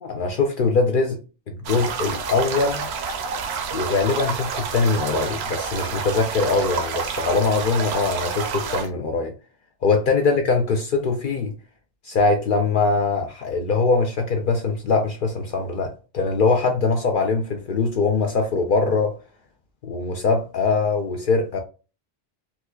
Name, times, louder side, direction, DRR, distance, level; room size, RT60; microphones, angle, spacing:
voice 1, 0.0-1.2 1.5-2.9 3.7-9.3 9.8-11.5 12.0-19.2 19.8-21.6, left 4 dB, 60° left, 0.7 m, -22 dB
sound 1, 1.6-8.9, right 5 dB, 80° right, 0.8 m, -29 dB
4.2 x 2.2 x 2.2 m
omnidirectional pair, 1.1 m